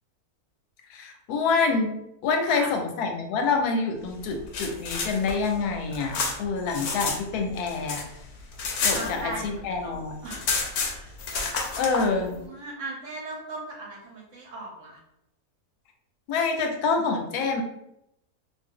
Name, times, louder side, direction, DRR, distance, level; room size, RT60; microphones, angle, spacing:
voice 1, 0.9-1.9 2.2-8.0 8.8-10.1 11.8-12.3 16.3-17.6, left 4 dB, 85° left, 3 dB, 1.1 m, -26 dB
sound 1, 4.3-7.2 7.5-9.6 9.9-10.0 10.2-12.1, left 4 dB, 65° left, 0.8 m, -30 dB
voice 2, 8.9-10.5 10.9-11.5 12.1-15.0, right 2 dB, 60° right, -1 dB, 1.0 m, -39 dB
2.6 x 2.4 x 3.6 m, 0.82 s
omnidirectional pair, 1.6 m